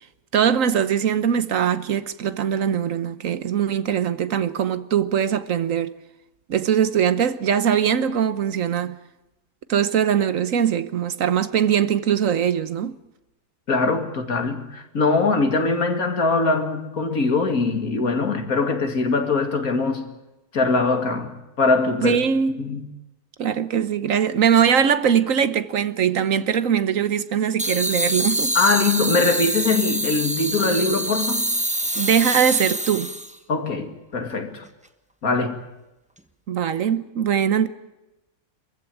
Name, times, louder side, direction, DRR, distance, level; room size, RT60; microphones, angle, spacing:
voice 1, 0.3-5.9 6.5-9.0 9.7-13.0 22.0-22.5 23.4-28.5 32.0-33.1 36.5-37.7, right 8 dB, 65° right, 1.3 m, -21 dB
voice 2, 13.7-20.0 20.5-22.2 22.6-22.8 28.5-31.5 33.5-34.7 35.2-35.5, left 3 dB, 70° left, 2.6 m, -22 dB
sound 1, 27.6-33.3, right 1 dB, 5° right, 1.0 m, -25 dB
24.0 x 15.0 x 9.1 m
omnidirectional pair, 1.5 m